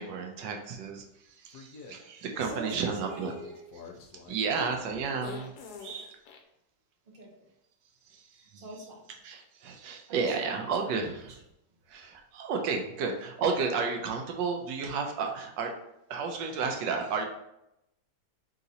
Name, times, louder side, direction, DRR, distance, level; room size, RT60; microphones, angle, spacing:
voice 1, 0.0-3.3 4.2-5.5 5.8-6.2 8.1-8.6 9.2-11.4 11.9-15.7 16.1-17.3, right 5 dB, 90° right, 3 dB, 1.3 m, -32 dB
sound 1, 1.5-1.9 2.8-6.4, left 5 dB, 70° left, 1.1 m, -46 dB
voice 2, 2.4-3.6 7.1-7.5 8.3-9.1 10.1-11.0, right 2 dB, 35° right, -3 dB, 1.0 m, -44 dB
3.9 x 3.8 x 2.7 m, 0.85 s
omnidirectional pair, 1.9 m